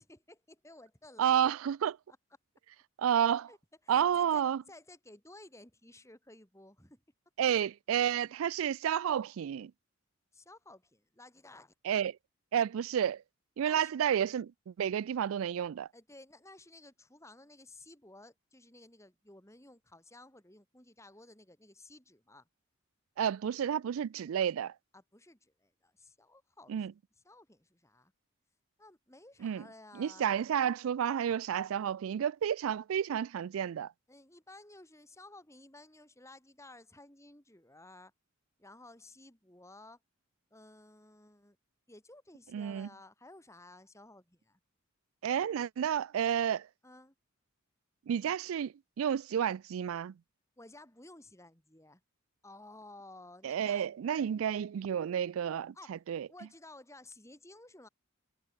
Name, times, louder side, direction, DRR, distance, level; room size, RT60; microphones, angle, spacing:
voice 1, 0.0-1.5 3.5-3.6 3.8-7.0 10.3-11.7 13.6-13.9 15.9-22.5 24.9-26.9 27.2-28.1 28.8-30.4 34.1-38.1 38.6-40.0 40.5-41.6 41.9-44.6 46.8-47.1 50.6-52.0 52.4-53.9 55.7-56.0 56.3-57.9, left 2 dB, 15° left, 4.8 m, -55 dB
voice 2, 1.2-1.9 3.0-3.5 3.9-4.6 7.4-9.7 11.9-12.2 12.5-13.2 13.6-15.9 23.2-24.7 26.7-26.9 29.4-29.6 30.0-33.9 42.5-42.9 45.2-46.7 48.1-50.1 53.4-56.3, right 9 dB, 85° right, 0.3 m, -31 dB
head